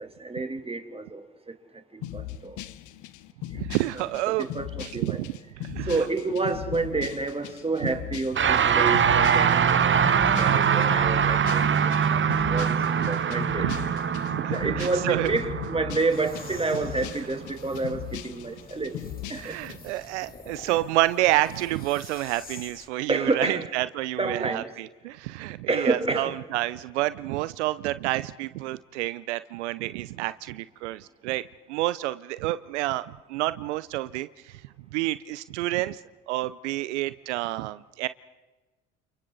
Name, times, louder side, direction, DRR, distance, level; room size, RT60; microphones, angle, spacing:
voice 1, 0.0-2.6 3.5-3.6 4.4-5.2 5.8-12.2 12.5-13.7 14.5-19.6 20.6-20.7 23.1-23.7 24.2-24.7 25.7-26.3, right 3 dB, 15° right, 5 dB, 3.1 m, -29 dB
sound 1, 2.0-19.8, left 13 dB, 60° left, 1.0 m, -39 dB
voice 2, 3.5-4.5 4.8-6.1 7.8-7.9 9.4-9.6 9.9-10.0 10.5-10.6 11.6-11.9 12.9-13.2 13.6-13.7 14.2-15.3 19.4-31.4 31.7-34.6 34.9-36.0 36.3-38.1, right 17 dB, 80° right, 16 dB, 0.7 m, -29 dB
sound 2, 8.3-17.8, right 7 dB, 35° right, 1.3 m, -24 dB
sound 3, 16.1-22.9, left 3 dB, 25° left, 3.5 m, -47 dB
30.0 x 29.0 x 4.1 m, 1.2 s
hypercardioid pair, 65°, 34 cm